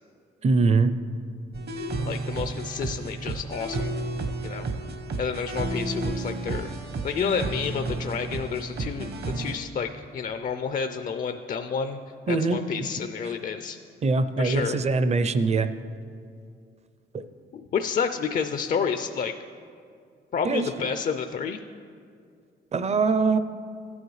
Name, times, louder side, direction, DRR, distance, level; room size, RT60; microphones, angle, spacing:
voice 1, 0.4-0.9 12.3-12.6 13.2-13.3 14.0-15.7 17.1-17.2 20.4-20.9 22.7-23.4, right 4 dB, 35° right, 11 dB, 0.5 m, -23 dB
sound 1, 1.5-9.6, right 3 dB, 55° right, 0.9 m, -32 dB
voice 2, 2.0-3.9 4.4-4.7 5.2-6.7 7.0-12.0 12.3-13.8 14.4-14.8 17.5-19.3 20.3-21.6, left 6 dB, 45° left, 8 dB, 0.4 m, -30 dB
14.5 x 9.3 x 3.2 m, 2.3 s
cardioid pair, 90°, 20 cm